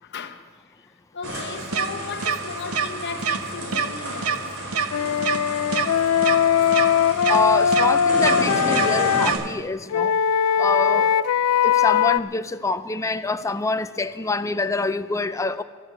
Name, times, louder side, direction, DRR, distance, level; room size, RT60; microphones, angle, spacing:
voice 1, 0.0-0.4 0.7-0.9 1.1-4.6 5.7-5.9 10.4-11.0 11.5-11.8, left 5 dB, 55° left, 0.9 m, -37 dB
sound 1, 1.2-9.3, right 1 dB, 60° right, 4.4 m, -31 dB
sound 2, 1.7-1.9 2.2-2.4 2.7-2.9 3.2-3.4 3.7-3.9 4.2-4.4 4.7-4.9 5.2-5.4 5.7-5.9 6.2-6.4 6.7-6.9 7.2-7.4 7.7-7.9 8.2-8.4 8.7-8.9 9.2-9.4, right 7 dB, 80° right, 0.9 m, -23 dB
Wind instrument woodwind instrument, 4.9-9.3 9.9-12.2, left 8 dB, 90° left, 0.4 m, -20 dB
voice 2, 7.3-10.1 10.6-11.3 11.6-15.6, left 3 dB, 15° left, 0.4 m, -26 dB
12.5 x 12.0 x 8.3 m
head